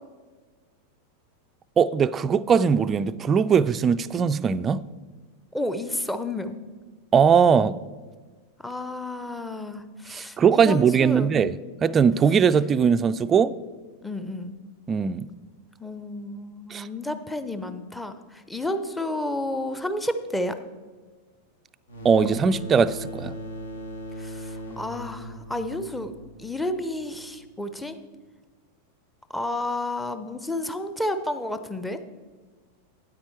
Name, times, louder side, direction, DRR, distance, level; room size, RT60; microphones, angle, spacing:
voice 1, 1.8-4.8 7.1-7.8 10.1-13.5 14.9-15.3 16.7-16.9 22.0-23.4, right 6 dB, 25° right, 0.3 m, -20 dB
voice 2, 5.5-6.6 8.6-11.3 14.0-14.6 15.8-20.6 24.2-26.1 26.4-28.0 29.3-32.0, left 1 dB, 5° left, 0.6 m, -31 dB
sound 1, 21.9-27.3, equal, 70° left, 1.4 m, -38 dB
9.3 x 8.7 x 4.5 m
figure-of-eight pair, 90°, 0 cm